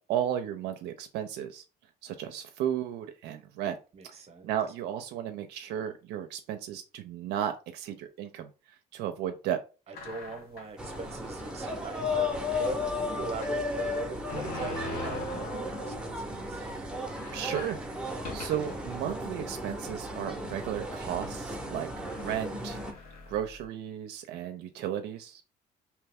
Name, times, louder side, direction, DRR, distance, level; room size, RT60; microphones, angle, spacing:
voice 1, 0.0-1.6 2.0-3.8 4.0-4.2 4.4-8.5 8.9-9.6 17.3-17.8 18.3-21.9 22.2-22.8 23.3-25.4, right 10 dB, 80° right, 6 dB, 0.4 m, -34 dB
voice 2, 3.9-4.5 9.9-16.7, right 2 dB, 40° right, 7 dB, 0.8 m, -41 dB
sound 1, 9.9-10.8 11.4-11.5 11.7-11.8 13.4-16.3 16.7-16.8 17.0-18.9 19.5-19.6 20.5-20.8 21.6-21.7 22.1-23.6, left 3 dB, 65° left, 0.9 m, -42 dB
sound 2, 10.8-22.9, left 2 dB, 5° right, 0.7 m, -35 dB
2.8 x 2.2 x 3.4 m, 0.32 s
cardioid pair, 110°, 17 cm